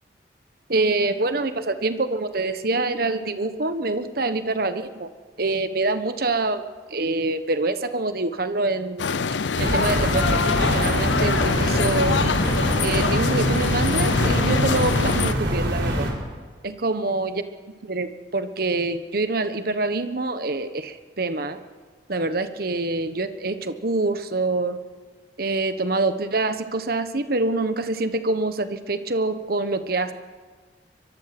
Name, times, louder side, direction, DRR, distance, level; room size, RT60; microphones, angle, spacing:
voice 1, 0.7-5.1 5.4-6.6 6.9-9.0 9.6-12.2 12.8-16.1 16.6-17.4 17.8-21.6 22.1-24.8 25.4-30.1, right 2 dB, 55° right, 10 dB, 1.3 m, -25 dB
sound 1, 9.0-15.3, left 5 dB, 85° left, 0.6 m, -24 dB
sound 2, 9.5-16.1, right 1 dB, 80° right, 4.6 m, -24 dB
23.5 x 22.5 x 6.1 m, 1.5 s
head